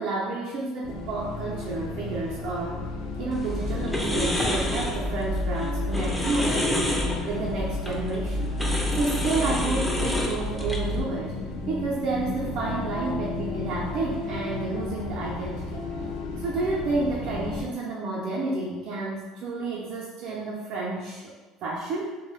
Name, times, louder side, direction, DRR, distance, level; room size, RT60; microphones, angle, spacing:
voice 1, 0.0-2.9 3.2-7.0 7.3-8.5 8.9-11.3 11.7-15.8 16.4-21.3 21.6-22.2, right 3 dB, 60° right, -5 dB, 0.4 m, -30 dB
sound 1, 0.8-17.6, left 3 dB, 75° left, 0.4 m, -34 dB
sound 2, 3.3-11.0, left 1 dB, 10° left, 0.4 m, -28 dB
2.2 x 2.0 x 2.9 m, 1.2 s
hypercardioid pair, 80°, 0 cm